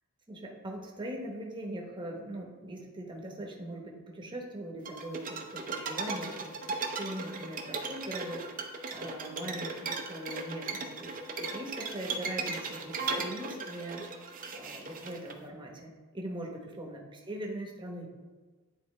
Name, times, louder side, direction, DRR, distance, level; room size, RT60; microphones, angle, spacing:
voice 1, 0.3-8.4 8.9-11.1 11.4-14.0 14.5-18.1, right 1 dB, 20° right, -1 dB, 1.0 m, -41 dB
sound 1, 4.9-15.3, right 3 dB, 40° right, 0.6 m, -37 dB
9.5 x 4.1 x 3.2 m, 1.3 s
head